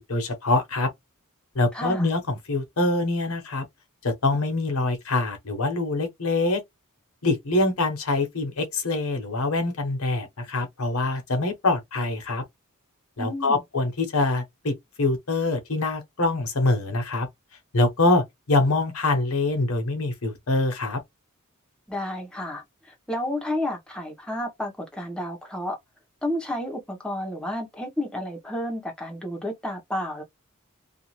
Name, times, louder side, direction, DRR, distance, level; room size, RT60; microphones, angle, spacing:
voice 1, 0.1-0.9 1.5-3.6 4.0-6.6 7.2-12.4 13.2-17.3 17.7-21.0, left 2 dB, 70° left, 0.9 m, -24 dB
voice 2, 1.7-2.1 13.2-13.6 21.9-25.8 26.2-30.2, left 1 dB, 5° left, 0.9 m, -31 dB
2.6 x 2.3 x 3.0 m
head